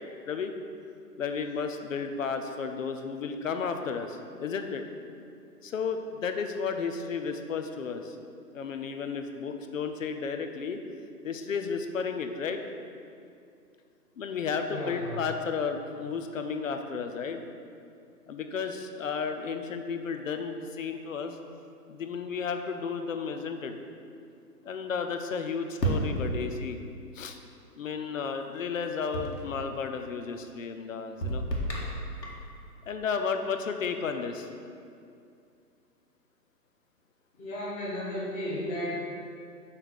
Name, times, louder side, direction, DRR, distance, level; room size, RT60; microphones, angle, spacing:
voice 1, 1.2-4.8 5.6-8.2 8.5-10.8 11.2-12.6 14.2-17.4 18.3-21.4 21.9-23.8 24.6-26.8 27.1-27.4 27.8-31.4 32.9-34.5, left 5 dB, 55° left, 6 dB, 0.7 m, -33 dB
voice 2, 14.7-15.3 37.4-39.1, left 1 dB, 15° left, -7 dB, 1.4 m, -34 dB
sound 1, 25.8-26.9 29.1-29.7 31.2-32.5, right 1 dB, 85° left, 1.8 m, -31 dB
5.7 x 5.1 x 6.3 m, 2.4 s
figure-of-eight pair, 140°, 49 cm